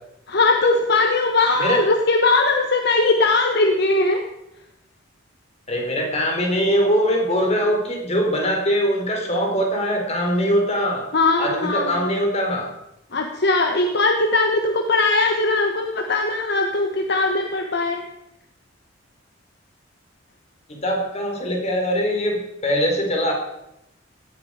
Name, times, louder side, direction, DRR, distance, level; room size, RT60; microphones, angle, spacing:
voice 1, 0.3-4.2 11.1-12.0 13.1-18.0, left 3 dB, 60° left, 4 dB, 1.2 m, -20 dB
voice 2, 5.7-11.0 11.4-12.7 20.7-23.3, equal, 35° left, 1 dB, 4.0 m, -22 dB
16.5 x 12.0 x 4.9 m, 0.84 s
head